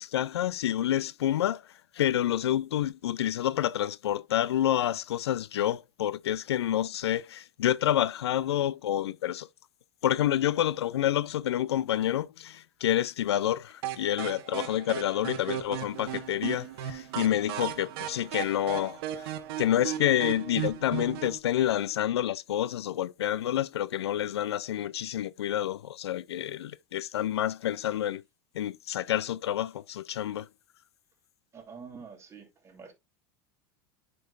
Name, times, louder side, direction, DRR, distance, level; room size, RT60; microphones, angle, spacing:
voice 1, 0.0-1.6 2.0-9.5 10.0-19.3 19.6-28.2 28.5-30.5, left 12 dB, 85° left, 0.4 m, -28 dB
sound 1, 13.8-21.4, right 11 dB, 65° right, 1.1 m, -36 dB
voice 2, 31.5-32.9, right 5 dB, 20° right, 2.9 m, -47 dB
9.1 x 5.4 x 2.5 m
hypercardioid pair, 100°, 13 cm